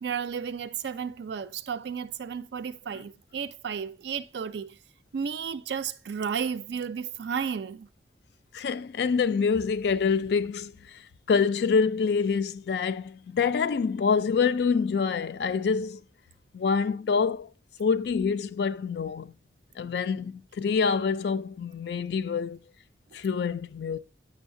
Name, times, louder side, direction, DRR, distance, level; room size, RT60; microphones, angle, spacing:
voice 1, 0.0-4.8 5.1-7.9, right 7 dB, 70° right, 0.4 m, -33 dB
voice 2, 8.5-16.0 16.5-17.5 17.8-19.3 19.8-22.6 23.1-24.0, left 5 dB, 65° left, 0.3 m, -26 dB
7.1 x 6.3 x 2.5 m
head